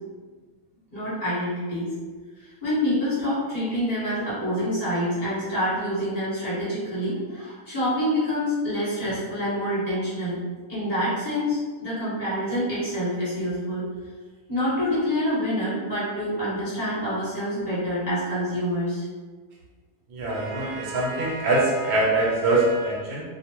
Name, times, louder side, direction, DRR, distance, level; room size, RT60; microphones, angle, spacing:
voice 1, 0.9-1.9 2.6-10.4 10.7-13.8 14.5-19.0, equal, 30° left, -11 dB, 1.1 m, -26 dB
voice 2, 20.1-23.2, right 2 dB, 85° right, -3 dB, 1.1 m, -23 dB
2.5 x 2.0 x 2.8 m, 1.4 s
omnidirectional pair, 1.5 m